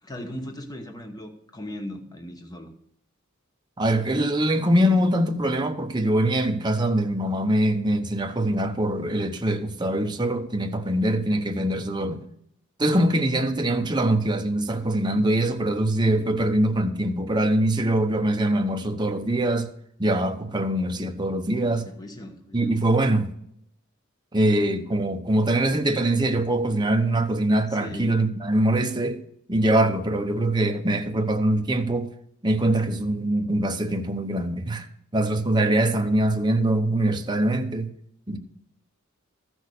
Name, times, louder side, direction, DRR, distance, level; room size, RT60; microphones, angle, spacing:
voice 1, 0.0-2.7 21.8-22.8 27.8-28.2, left 1 dB, 20° left, 1.1 m, -38 dB
voice 2, 3.8-12.2 12.8-19.7 20.0-21.9 22.5-23.3 24.3-29.2 29.5-32.1 32.4-34.9 35.1-37.9 38.3-38.4, right 1 dB, 20° right, 1.0 m, -23 dB
14.0 x 6.2 x 6.7 m
head